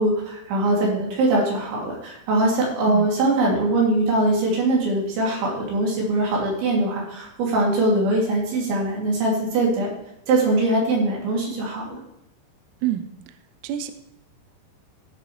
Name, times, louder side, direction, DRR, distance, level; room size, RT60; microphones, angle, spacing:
voice 1, 0.0-9.9 10.3-12.0, right 2 dB, 65° right, -3 dB, 5.0 m, -22 dB
voice 2, 12.8-13.1 13.6-13.9, right 11 dB, 85° right, 10 dB, 2.4 m, -27 dB
15.0 x 6.8 x 3.2 m, 0.86 s
omnidirectional pair, 5.7 m